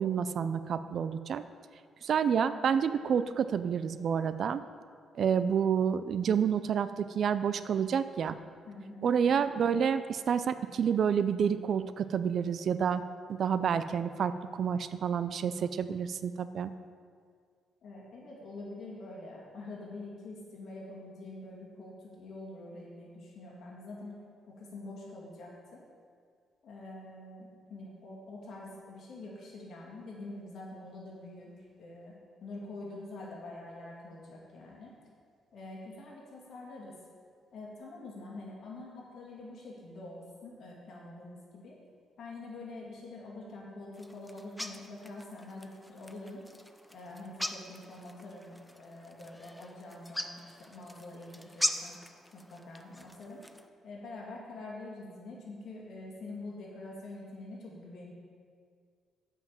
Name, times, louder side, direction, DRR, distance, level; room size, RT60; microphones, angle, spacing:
voice 1, 0.0-1.4 2.0-4.6 5.1-8.4 9.0-13.0 13.3-16.7, right 7 dB, 60° right, 13 dB, 0.4 m, -29 dB
voice 2, 8.7-9.1 17.8-24.2 24.5-25.8 26.6-32.1 32.4-34.9 35.5-36.9 37.5-41.8 42.2-46.5 46.9-52.0 52.3-53.4 53.8-58.1, left 2 dB, 60° left, -3 dB, 2.5 m, -45 dB
sound 1, 43.9-53.7, equal, 5° left, 0.5 m, -41 dB
7.4 x 5.7 x 7.1 m, 2.1 s
cardioid pair, 90°, 0 cm